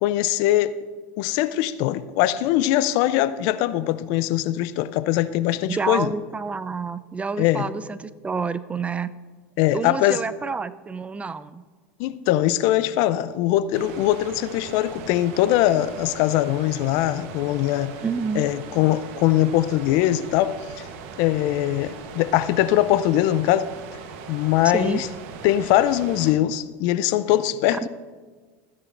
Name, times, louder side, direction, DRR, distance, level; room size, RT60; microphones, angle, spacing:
voice 1, 0.0-0.7 1.2-6.1 7.4-7.7 9.6-10.2 12.0-18.0 18.4-20.9 21.2-23.7 24.3-25.1 25.4-27.9, left 13 dB, 60° left, 0.5 m, -21 dB
voice 2, 5.7-9.1 9.7-11.6 18.0-18.5 24.7-25.0 27.7-27.9, right 4 dB, 15° right, 0.4 m, -28 dB
sound 1, 13.7-26.3, right 6 dB, 65° right, 1.1 m, -40 dB
14.5 x 9.7 x 2.6 m
hypercardioid pair, 95°, 7 cm